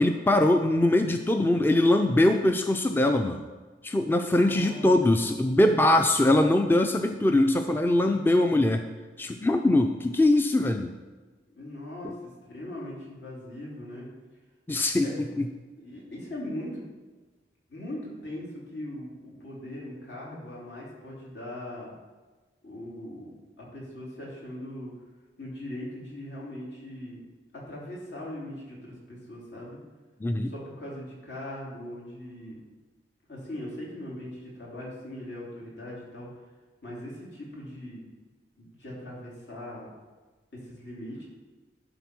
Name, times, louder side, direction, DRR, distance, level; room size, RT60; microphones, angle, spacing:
voice 1, 0.0-3.4 3.8-8.8 9.2-10.9 12.0-12.1 14.7-15.1 15.4-15.5 30.2-30.5, left 1 dB, 10° left, 6 dB, 0.4 m, -22 dB
voice 2, 4.2-5.0 11.5-12.1 12.4-14.1 15.0-15.1 15.8-16.8 17.7-21.9 22.6-23.3 23.6-24.9 25.4-27.2 27.7-29.8 30.5-32.6 33.3-36.3 36.8-38.0 38.6-39.9 40.5-41.3, left 1 dB, 75° left, -5 dB, 3.3 m, -40 dB
11.5 x 4.2 x 6.1 m, 1.3 s
head